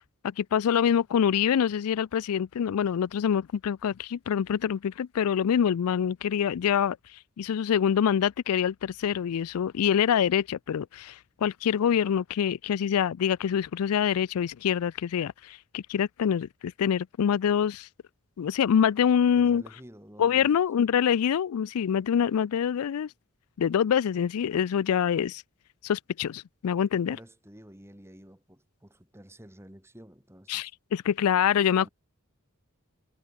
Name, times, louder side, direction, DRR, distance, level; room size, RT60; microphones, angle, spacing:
voice 1, 0.2-17.9 18.4-19.6 20.2-23.1 23.6-25.4 25.8-27.2 30.5-31.9, left 8 dB, 80° left, 0.4 m, -25 dB
voice 2, 19.4-20.5 26.9-30.7 31.4-31.9, equal, 10° right, 2.6 m, -50 dB
head